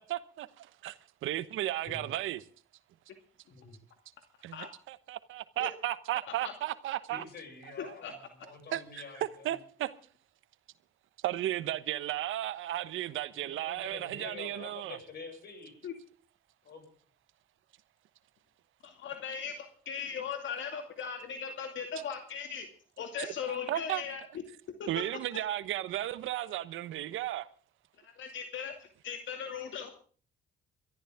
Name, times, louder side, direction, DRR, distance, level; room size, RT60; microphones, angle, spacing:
voice 1, 0.0-2.4 4.4-7.2 8.7-9.9 11.2-15.0 23.2-24.0 24.9-27.5, right 13 dB, 85° right, 1.1 m, -35 dB
voice 2, 7.1-8.2 8.4-9.5 13.3-15.7 16.6-16.8, left 4 dB, 55° left, 7.2 m, -47 dB
voice 3, 7.8-8.1 15.8-15.9 18.8-22.7 23.0-24.2 24.8-25.0 25.3-25.4 28.0-29.9, left 7 dB, 70° left, 2.4 m, -38 dB
23.0 x 13.5 x 3.6 m
cardioid pair, 90°, 20 cm